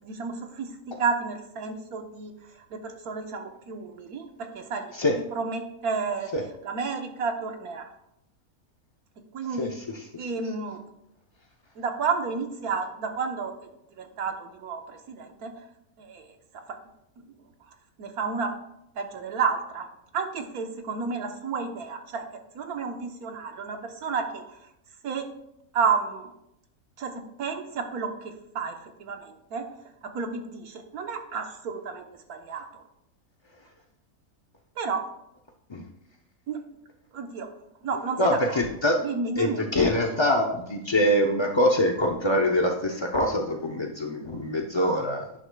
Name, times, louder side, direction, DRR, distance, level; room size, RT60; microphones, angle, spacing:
voice 1, 0.0-0.7 1.0-2.3 2.7-4.9 5.4-6.3 6.6-7.9 9.3-9.7 10.2-10.8 11.8-13.5 14.0-15.5 16.0-16.2 18.0-18.5 19.0-19.9 20.1-22.3 22.5-24.4 25.0-25.3 25.7-26.3 27.0-27.1 27.4-29.6 30.1-32.0 32.3-32.8 34.8-35.0 36.5-36.6 37.1-37.5 37.8-38.2 38.5-38.6 39.0-39.6, right 5 dB, 85° right, 4 dB, 1.5 m, -31 dB
voice 2, 9.5-10.3 35.7-35.8 38.2-39.0 39.4-45.2, left 1 dB, 40° left, 1 dB, 0.3 m, -24 dB
11.0 x 9.8 x 2.3 m, 0.83 s
omnidirectional pair, 1.5 m